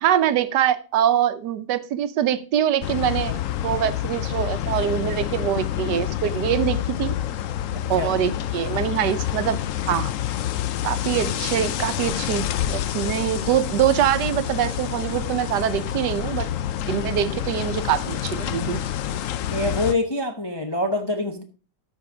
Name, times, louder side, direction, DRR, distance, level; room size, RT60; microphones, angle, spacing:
voice 1, 0.0-7.2 7.9-9.6 9.9-10.1 10.8-16.5 16.9-18.9, right 10 dB, 80° right, 13 dB, 1.3 m, -24 dB
Windy day in Beaulieu Gardens - midday bells, 2.8-19.9, left 11 dB, 65° left, 0.8 m, -28 dB
voice 2, 7.7-8.1 19.5-21.4, left 2 dB, 20° left, 4 dB, 0.6 m, -25 dB
13.0 x 5.1 x 4.9 m, 0.38 s
omnidirectional pair, 1.8 m